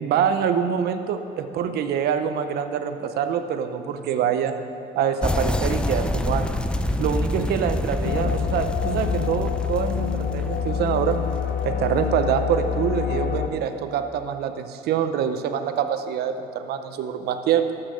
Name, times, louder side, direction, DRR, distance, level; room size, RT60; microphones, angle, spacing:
voice 1, 0.0-4.5 5.0-6.5 7.0-11.2 11.6-17.7, right 8 dB, 75° right, 9 dB, 0.8 m, -25 dB
sound 1, 5.2-12.9, left 1 dB, 5° left, 0.5 m, -28 dB
sound 2, 8.0-13.5, left 7 dB, 55° left, 0.8 m, -26 dB
13.0 x 5.8 x 6.3 m, 2.6 s
cardioid pair, 110°, 17 cm